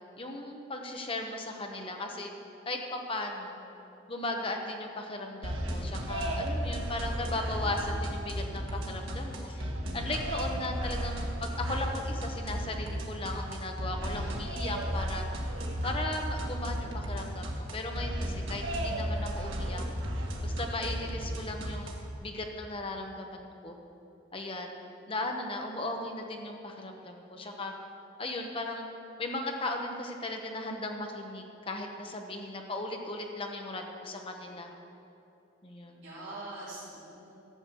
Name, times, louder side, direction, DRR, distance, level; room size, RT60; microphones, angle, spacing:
voice 1, 0.2-2.3 2.6-3.6 4.1-9.7 9.9-15.2 15.8-19.8 20.4-23.8 24.3-24.7 25.1-27.7 28.2-28.9 29.2-34.7 35.6-36.0, left 2 dB, 25° left, 3 dB, 0.9 m, -37 dB
sound 1, 5.4-22.1, equal, 85° right, 1.6 m, -34 dB
voice 2, 7.4-7.9 36.0-37.3, right 1 dB, 60° right, -11 dB, 3.2 m, -43 dB
12.5 x 6.4 x 7.7 m, 2.8 s
head